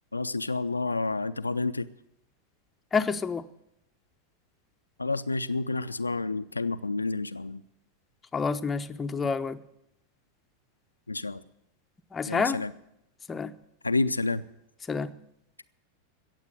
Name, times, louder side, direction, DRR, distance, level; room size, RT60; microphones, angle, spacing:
voice 1, 0.1-1.9 5.0-7.6 11.1-11.4 12.3-12.7 13.8-14.4, left 3 dB, 80° left, 10 dB, 0.5 m, -29 dB
voice 2, 2.9-3.4 8.3-9.6 12.1-12.6 13.3-13.5 14.9-15.1, left 5 dB, 15° left, 9 dB, 0.7 m, -28 dB
16.5 x 7.4 x 9.3 m, 0.82 s
figure-of-eight pair, 90°, 0 cm